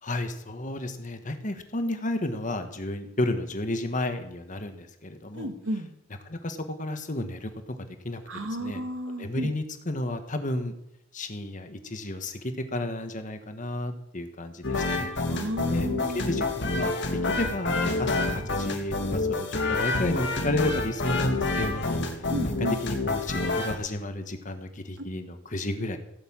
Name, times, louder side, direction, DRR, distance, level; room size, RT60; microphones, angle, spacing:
voice 1, 0.0-5.5 6.2-8.2 8.6-8.8 9.1-10.7 11.1-15.1 15.7-15.9 16.1-16.9 17.4-22.0 22.6-26.0, left 1 dB, 40° left, 8 dB, 1.5 m, -32 dB
voice 2, 5.3-5.9 8.3-9.5 15.3-16.4 22.3-22.7, right 1 dB, 75° right, 7 dB, 2.0 m, -32 dB
sound 1, 14.6-23.8, left 2 dB, 60° left, 2.1 m, -28 dB
16.5 x 6.9 x 8.8 m, 0.79 s
head